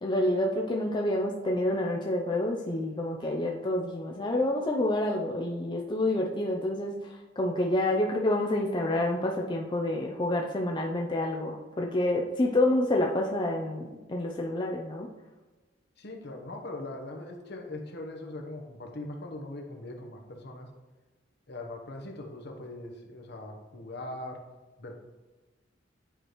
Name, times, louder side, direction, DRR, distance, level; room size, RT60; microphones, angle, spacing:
voice 1, 0.0-7.0 7.4-15.1, left 1 dB, 25° left, 0 dB, 0.5 m, -28 dB
voice 2, 16.0-20.7 21.5-24.4 24.8-24.9, left 2 dB, 60° left, 3 dB, 1.0 m, -41 dB
8.8 x 4.9 x 3.0 m, 1.2 s
head